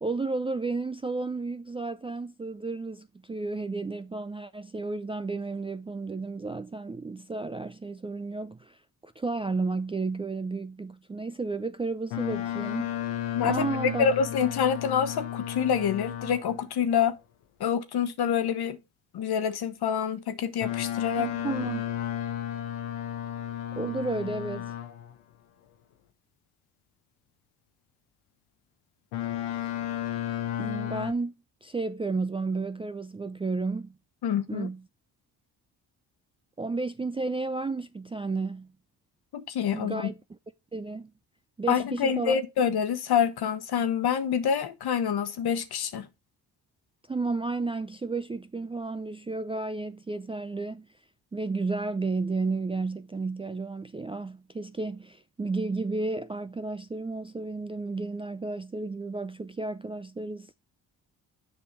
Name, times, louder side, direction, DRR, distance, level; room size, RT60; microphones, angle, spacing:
voice 1, 0.0-12.9 13.4-14.1 21.2-21.8 23.8-24.8 30.6-33.9 34.5-34.8 36.6-38.7 39.7-40.2 40.7-41.1 41.6-42.4 47.1-50.9 51.3-60.5, right 3 dB, 15° right, 0.4 m, -32 dB
Boat Water vehicle, 12.1-16.6 20.6-25.1 29.1-31.1, left 12 dB, 80° left, 1.0 m, -33 dB
voice 2, 13.3-17.2 17.6-18.8 19.1-21.3 34.2-34.7 39.3-40.1 41.7-46.1, left 7 dB, 55° left, 1.2 m, -27 dB
7.4 x 5.4 x 4.4 m
hypercardioid pair, 50°, 46 cm